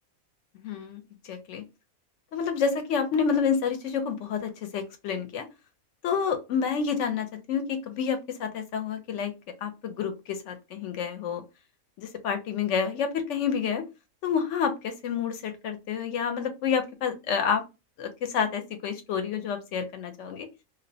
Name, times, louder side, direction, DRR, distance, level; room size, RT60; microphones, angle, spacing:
voice 1, 0.6-1.0 1.3-1.6 2.3-5.5 6.0-9.3 9.6-11.4 12.0-13.8 14.2-17.6 18.0-20.5, left 6 dB, 65° left, 7 dB, 0.9 m, -29 dB
2.4 x 2.1 x 2.6 m, 0.25 s
omnidirectional pair, 1.5 m